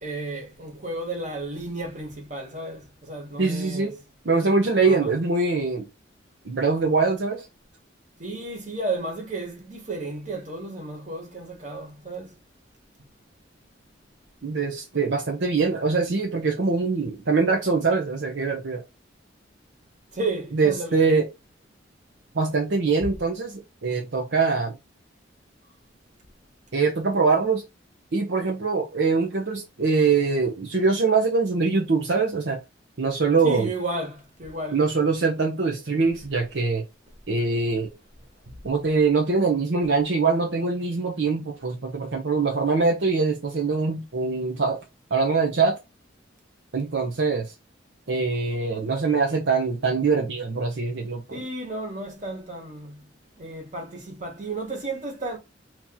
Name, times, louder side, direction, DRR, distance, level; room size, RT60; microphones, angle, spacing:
voice 1, 0.0-3.9 4.8-5.1 8.2-12.3 20.1-21.0 33.4-34.8 38.5-38.6 51.3-53.0 53.4-55.4, right 2 dB, 40° right, 1.4 m, -33 dB
voice 2, 3.4-3.9 4.2-5.9 6.5-7.4 14.4-18.8 20.5-21.3 22.3-24.8 26.7-27.6 28.1-32.6 33.0-33.7 34.7-36.8 37.3-37.9 38.6-44.8 45.1-45.8 46.7-47.5 48.1-51.4, right 4 dB, 70° right, 0.7 m, -23 dB
2.9 x 2.8 x 3.7 m
head